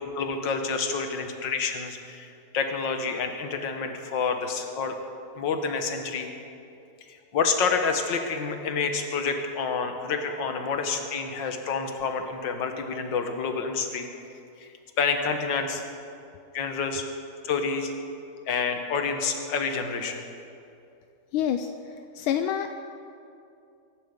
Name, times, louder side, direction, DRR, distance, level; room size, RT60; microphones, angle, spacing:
voice 1, 0.1-5.0 5.4-6.3 7.1-14.1 14.6-14.7 15.0-15.8 16.5-17.0 17.4-17.9 18.5-20.2, left 5 dB, 60° left, 5 dB, 1.9 m, -28 dB
voice 2, 21.3-21.7 22.1-22.8, left 9 dB, 85° left, 7 dB, 1.5 m, -26 dB
23.0 x 11.0 x 5.2 m, 2.6 s
omnidirectional pair, 2.3 m